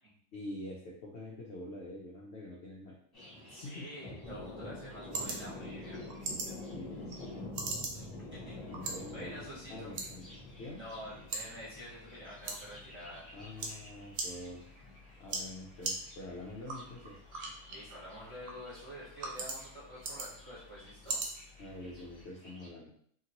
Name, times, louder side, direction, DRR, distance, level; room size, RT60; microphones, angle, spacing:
voice 1, 0.3-2.9 3.6-3.9 6.7-7.2 8.7-10.3 10.6-10.8 13.3-14.7 15.2-17.2 21.6-22.9, left 1 dB, 65° left, -3 dB, 0.6 m, -45 dB
Thunder, 3.1-22.7, left 2 dB, 30° left, 0.9 m, -49 dB
voice 2, 3.4-6.0 7.9-8.6 8.8-9.9 10.8-13.3 17.7-21.2, equal, 20° right, -9 dB, 0.9 m, -48 dB
sound 1, 4.2-22.2, right 3 dB, 65° right, 0.9 m, -43 dB
2.9 x 2.7 x 2.8 m, 0.63 s
omnidirectional pair, 1.7 m